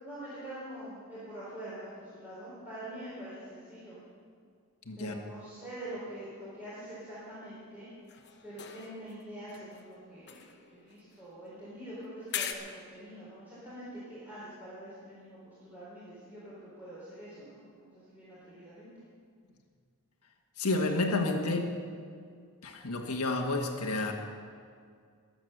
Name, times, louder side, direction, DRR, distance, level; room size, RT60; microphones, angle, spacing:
voice 1, 0.0-4.0 5.0-7.9 8.4-18.9, right 1 dB, 10° right, -10 dB, 3.9 m, -45 dB
sound 1, 8.1-9.2 9.5-11.6 12.3-12.5, left 9 dB, 50° left, 1.1 m, -41 dB
voice 2, 20.6-21.7 22.6-24.1, left 2 dB, 85° left, 2 dB, 1.5 m, -30 dB
21.5 x 8.0 x 6.6 m, 2.2 s
head